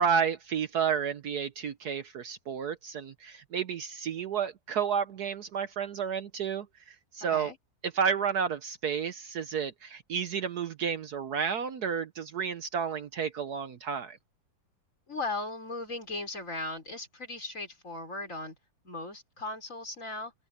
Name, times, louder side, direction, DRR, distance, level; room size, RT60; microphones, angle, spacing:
voice 1, 0.0-7.5 7.9-14.2, right 7 dB, 60° right, 1.3 m, -31 dB
voice 2, 15.1-18.6 18.8-20.3, left 2 dB, 40° left, 5.2 m, -37 dB
omnidirectional pair, 2.0 m